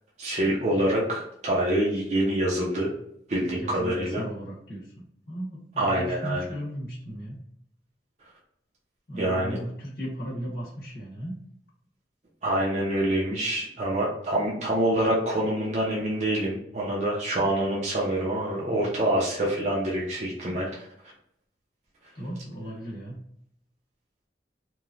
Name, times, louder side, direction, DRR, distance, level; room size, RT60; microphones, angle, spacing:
voice 1, 0.2-2.9 3.3-4.2 5.8-6.4 9.2-9.6 12.4-20.7, right 1 dB, 40° right, -5 dB, 0.6 m, -26 dB
voice 2, 3.5-4.9 5.3-7.4 9.1-11.4 22.1-23.2, equal, 55° left, -5 dB, 0.8 m, -36 dB
3.0 x 2.2 x 2.4 m, 0.73 s
head